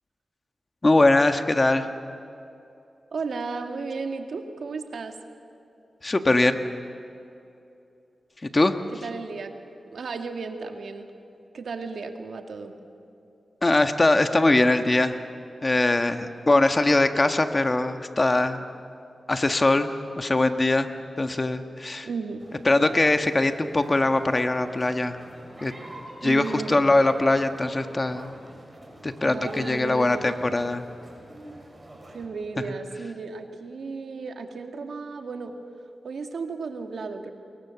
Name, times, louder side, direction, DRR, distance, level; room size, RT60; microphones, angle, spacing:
voice 1, 0.8-1.9 6.0-6.6 8.5-8.7 13.6-15.2 15.6-18.6 19.3-19.9 20.2-20.9 21.2-22.1 22.6-25.2 25.6-25.7 26.2-28.3 29.0-30.8, left 2 dB, 35° left, 7 dB, 1.6 m, -21 dB
voice 2, 3.1-5.2 8.9-9.5 9.9-11.1 11.5-12.7 22.0-22.5 26.2-27.0 29.2-30.5 32.1-35.5 36.0-37.3, right 4 dB, 80° right, 5 dB, 2.1 m, -34 dB
sound 1, 22.4-32.3, right 1 dB, 25° right, 6.8 m, -45 dB
29.5 x 22.5 x 7.1 m, 2.7 s
cardioid pair, 60°, 0 cm